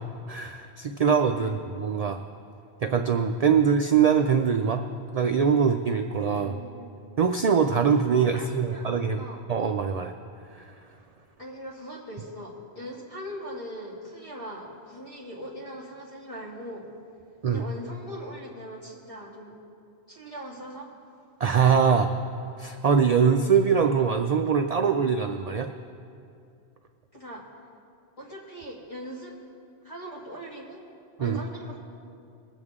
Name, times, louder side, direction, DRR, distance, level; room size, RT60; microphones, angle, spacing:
voice 1, 0.3-2.2 2.8-4.8 5.1-6.5 7.2-9.2 9.5-10.1 10.6-10.7 17.4-17.6 21.4-22.1 22.6-25.7 31.2-31.4, right 6 dB, 50° right, 6 dB, 0.5 m, -23 dB
voice 2, 6.4-6.9 8.3-9.4 11.4-16.9 17.5-19.6 20.1-20.9 27.1-27.4 28.2-29.4 29.8-30.8 31.2-31.8, equal, 30° left, -6 dB, 2.6 m, -40 dB
21.5 x 8.0 x 3.7 m, 2.4 s
omnidirectional pair, 1.1 m